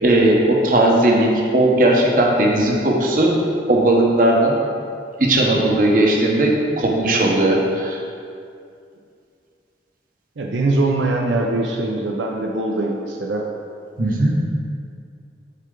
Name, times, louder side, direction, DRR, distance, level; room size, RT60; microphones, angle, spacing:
voice 1, 0.0-3.3 3.7-4.5 5.2-8.0 14.0-14.3, right 1 dB, 50° right, -1 dB, 0.9 m, -17 dB
voice 2, 10.4-13.5, right 2 dB, 85° right, 0 dB, 0.6 m, -22 dB
8.2 x 4.4 x 3.8 m, 2.4 s
head